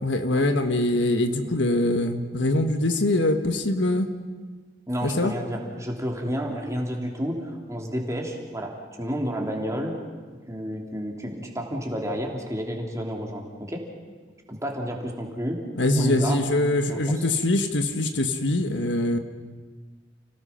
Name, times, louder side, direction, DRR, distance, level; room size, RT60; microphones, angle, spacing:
voice 1, 0.0-4.1 5.0-5.3 15.8-19.2, left 1 dB, 90° left, 7 dB, 1.6 m, -23 dB
voice 2, 4.9-10.0 10.5-13.8 14.5-15.6 15.9-16.4 16.9-17.2, equal, 15° right, 0 dB, 3.2 m, -30 dB
30.0 x 18.0 x 5.9 m, 1.4 s
head